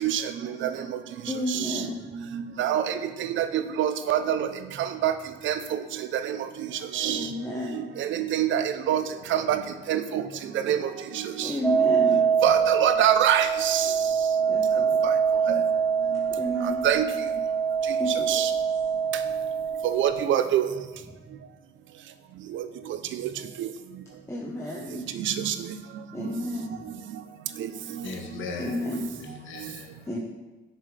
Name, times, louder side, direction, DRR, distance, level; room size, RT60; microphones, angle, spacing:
voice 1, 0.0-0.7 1.5-1.9 2.3-2.9 3.2-4.5 4.8-5.1 5.4-5.8 6.1-6.4 6.9-7.3 7.7-9.0 9.3-9.6 9.9-10.2 10.7-11.8 12.1-13.9 15.5-15.6 16.8-17.1 18.3-18.5 19.8-20.7 22.5-22.6 23.2-23.3 23.6-23.7 25.3-25.5 28.0-28.1, right 10 dB, 75° right, 10 dB, 0.6 m, -25 dB
voice 2, 1.3-2.1 7.0-7.8 11.4-12.2 14.5-15.0 16.3-16.8 18.0-18.3 24.3-25.1 26.1-26.8 28.6-29.1 30.1-30.2, left 1 dB, 15° left, -3 dB, 1.1 m, -32 dB
sound 1, 11.6-20.3, right 6 dB, 5° right, 0.7 m, -24 dB
voice 3, 28.0-30.2, left 4 dB, 75° left, 3 dB, 1.2 m, -39 dB
7.4 x 6.8 x 3.3 m, 1.2 s
cardioid pair, 90°, 20 cm